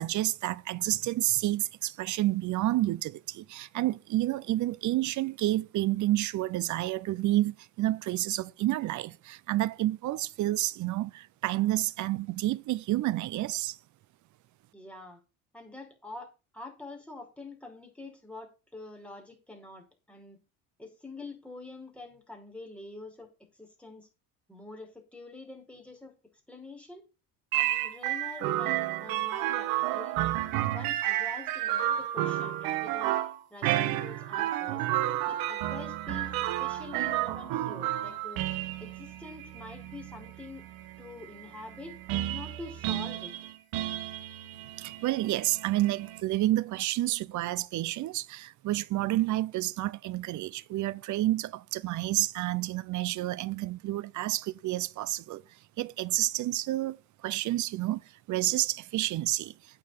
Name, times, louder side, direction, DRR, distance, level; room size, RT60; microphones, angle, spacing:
voice 1, 0.0-13.8 44.8-55.4 55.8-58.0 58.3-59.5, right 16 dB, 55° right, 0.7 m, -29 dB
voice 2, 14.7-15.2 15.5-20.4 20.8-23.3 23.6-24.1 24.5-26.1 26.5-27.0 27.5-30.1 30.7-33.2 33.5-34.8 35.2-38.5 38.8-40.6 41.0-42.0 42.3-43.3, left 2 dB, 5° left, 4.9 m, -46 dB
sound 1, 27.5-46.2, right 14 dB, 75° right, 1.4 m, -31 dB
8.9 x 5.7 x 7.2 m
supercardioid pair, 85°, 36 cm